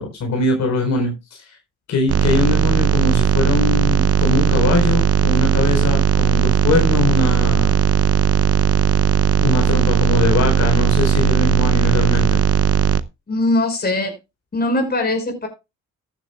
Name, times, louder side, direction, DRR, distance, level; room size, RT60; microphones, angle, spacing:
voice 1, 0.0-1.5 1.9-7.8 9.4-12.4, left 3 dB, 65° left, 4.4 m, -21 dB
sound 1, 2.1-13.0, right 7 dB, 50° right, 0.7 m, -17 dB
voice 2, 13.3-14.2 14.5-15.5, left 2 dB, 30° left, 5.4 m, -20 dB
14.5 x 10.5 x 2.3 m
cardioid pair, 90°, 30 cm